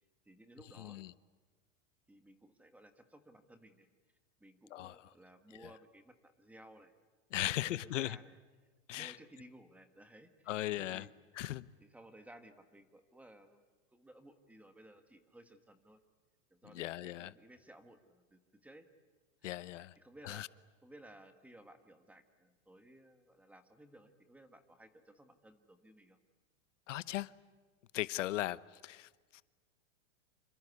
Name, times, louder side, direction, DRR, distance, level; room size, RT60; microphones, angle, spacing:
voice 1, 0.2-1.0 2.1-3.9 4.4-6.9 7.4-8.4 8.9-10.5 10.8-11.1 11.8-13.6 13.9-16.0 16.5-18.9 19.4-20.5 20.8-26.2, right 1 dB, 5° right, 1.5 m, -58 dB
voice 2, 0.8-1.1 4.7-5.1 5.5-5.7 7.3-8.2 8.9-9.2 10.5-11.1 11.3-11.7 16.7-17.3 19.4-19.9 20.2-20.5 26.9-27.3 27.9-29.4, left 15 dB, 80° left, 1.0 m, -38 dB
27.5 x 26.0 x 8.3 m
supercardioid pair, 165°, 37 cm